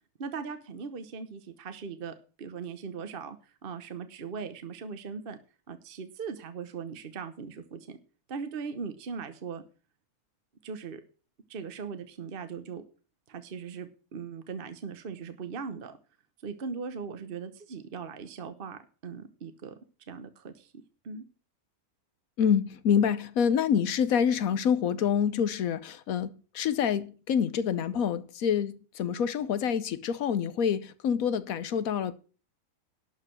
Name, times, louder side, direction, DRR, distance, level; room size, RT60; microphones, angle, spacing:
voice 1, 0.2-5.4 5.7-8.0 8.3-9.6 10.6-11.0 11.5-12.8 13.3-16.0 16.4-19.7 20.1-20.7 21.0-21.2, right 5 dB, 40° right, 1.1 m, -39 dB
voice 2, 22.4-32.1, left 8 dB, 70° left, 1.2 m, -27 dB
12.0 x 4.9 x 7.6 m
omnidirectional pair, 1.6 m